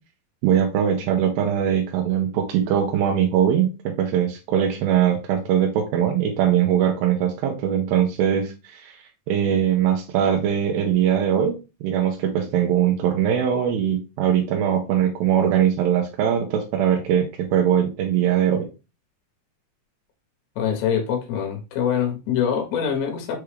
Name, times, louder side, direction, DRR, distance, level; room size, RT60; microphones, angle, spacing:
voice 1, 0.4-9.0 9.3-11.6 11.8-18.7, right 9 dB, 85° right, 2 dB, 2.5 m, -21 dB
voice 2, 20.6-23.4, left 8 dB, 65° left, 1 dB, 1.8 m, -24 dB
5.9 x 2.3 x 3.2 m, 0.29 s
omnidirectional pair, 4.1 m